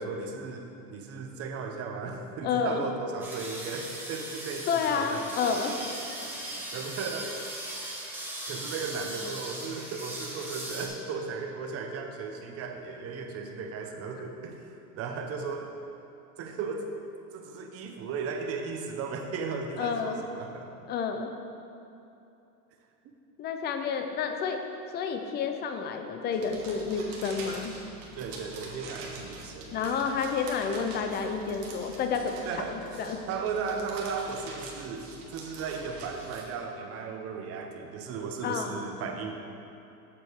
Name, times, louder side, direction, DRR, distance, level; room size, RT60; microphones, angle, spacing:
voice 1, 0.0-5.2 6.0-7.4 8.5-15.7 16.4-16.9 17.3-20.7 28.2-29.8 32.5-32.8 33.3-39.3, right 5 dB, 30° right, 4 dB, 0.8 m, -36 dB
voice 2, 2.4-2.8 4.7-5.7 19.8-20.2 20.9-21.3 23.4-24.6 24.9-27.7 29.7-33.2 38.4-38.9, left 6 dB, 25° left, 5 dB, 0.5 m, -30 dB
sound 1, 3.2-10.9, right 1 dB, 5° right, 1.2 m, -39 dB
sound 2, 26.3-36.4, right 3 dB, 50° right, 1.4 m, -45 dB
7.4 x 6.9 x 4.7 m, 2.8 s
supercardioid pair, 125°, 45 cm